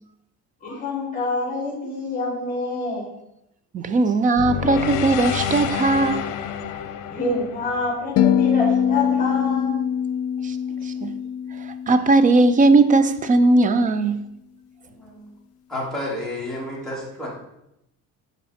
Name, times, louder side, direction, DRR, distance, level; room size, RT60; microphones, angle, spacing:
voice 1, 0.6-3.1 7.1-9.8 10.8-11.0, left 2 dB, 25° left, 2.9 m, -27 dB
voice 2, 3.7-6.3 10.4-10.6 10.8-11.1 11.9-14.2, right 3 dB, 25° right, 0.4 m, -18 dB
sound 1, 4.4-8.6, left 8 dB, 70° left, 0.8 m, -28 dB
sound 2, 8.2-12.5, left 8 dB, 50° left, 0.5 m, -23 dB
voice 3, 15.0-15.3 15.7-17.3, left 1 dB, ahead, 2.5 m, -30 dB
11.0 x 4.2 x 4.2 m
cardioid pair, 160°, 33 cm